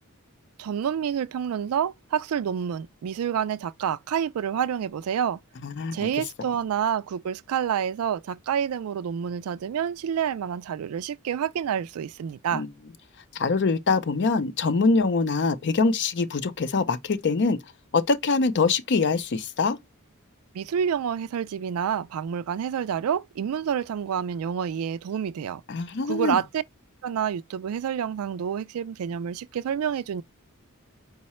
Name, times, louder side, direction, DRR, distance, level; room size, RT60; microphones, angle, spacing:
voice 1, 0.6-5.4 5.9-12.6 20.5-25.6 26.0-26.6 27.0-30.2, right 8 dB, 75° right, 0.3 m, -28 dB
voice 2, 5.6-6.0 12.5-12.7 13.3-17.6 17.9-19.8 25.7-26.4, left 4 dB, 50° left, 0.5 m, -24 dB
4.7 x 2.1 x 4.1 m
head